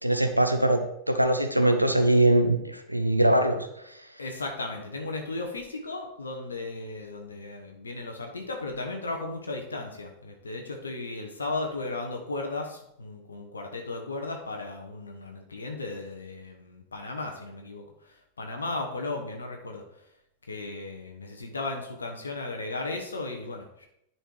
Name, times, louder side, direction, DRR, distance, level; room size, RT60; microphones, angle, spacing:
voice 1, 0.0-0.8 1.1-3.9, right 1 dB, 90° right, 6 dB, 0.9 m, -22 dB
voice 2, 4.2-19.8 20.4-23.9, left 2 dB, 75° left, 2 dB, 1.1 m, -35 dB
10.0 x 4.5 x 4.7 m, 0.78 s
figure-of-eight pair, 90°, 0 cm